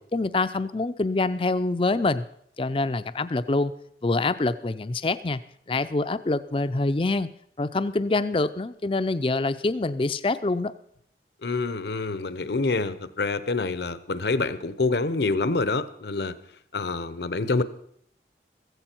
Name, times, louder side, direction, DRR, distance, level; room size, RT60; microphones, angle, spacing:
voice 1, 0.1-2.2 2.6-3.7 4.0-5.4 5.7-7.3 7.6-10.7, left 2 dB, 30° left, 14 dB, 0.5 m, -25 dB
voice 2, 11.4-16.4 16.7-17.6, left 3 dB, 75° left, 14 dB, 0.8 m, -26 dB
16.0 x 14.5 x 4.5 m, 0.67 s
head